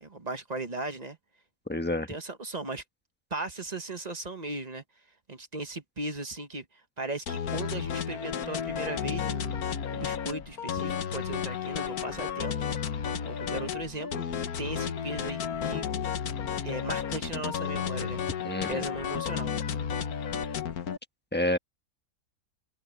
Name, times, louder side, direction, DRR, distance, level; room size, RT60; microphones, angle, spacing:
voice 1, 0.0-1.2 2.1-2.8 3.3-4.8 5.3-6.6 7.0-9.6 9.9-12.5 13.2-14.2 14.6-15.9 16.6-18.2 18.7-19.5, right 2 dB, 30° right, 1.4 m, -37 dB
voice 2, 1.7-2.1 18.4-18.9 21.3-21.6, left 1 dB, 10° left, 1.2 m, -28 dB
sound 1, 7.3-21.0, left 8 dB, 85° left, 1.6 m, -32 dB
open air
omnidirectional pair, 1.5 m